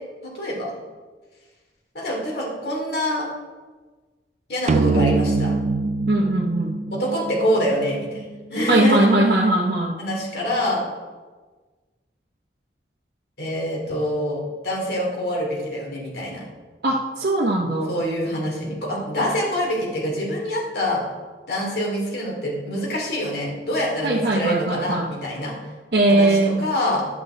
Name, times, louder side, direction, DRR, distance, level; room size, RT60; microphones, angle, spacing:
voice 1, 0.2-0.7 1.9-3.3 4.5-5.5 6.9-8.2 8.5-9.0 10.0-10.9 13.4-16.4 17.9-21.0 21.5-25.6 26.1-27.0, equal, 60° left, -3 dB, 2.5 m, -25 dB
sound 1, 4.7-8.2, right 3 dB, 40° right, 0.3 m, -23 dB
voice 2, 6.1-6.7 8.7-10.0 16.8-17.9 24.0-25.0 25.9-26.6, right 2 dB, 60° right, -3 dB, 0.9 m, -20 dB
11.0 x 6.8 x 3.8 m, 1.4 s
head